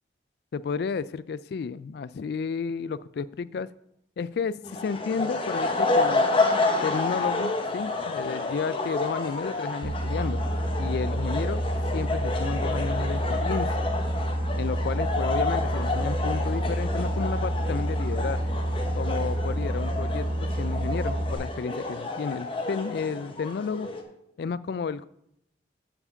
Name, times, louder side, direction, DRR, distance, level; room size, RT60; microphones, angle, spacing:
voice 1, 0.5-3.7 4.2-6.3 6.8-10.4 10.8-11.6 11.9-13.7 14.5-18.4 18.9-23.9 24.4-25.1, left 5 dB, 60° left, 18 dB, 0.3 m, -32 dB
sound 1, 4.6-24.0, left 2 dB, 30° left, 0.9 m, -30 dB
Boat Water vehicle, 9.8-21.3, equal, 55° right, 1.0 m, -28 dB
8.7 x 4.8 x 7.0 m, 0.78 s
head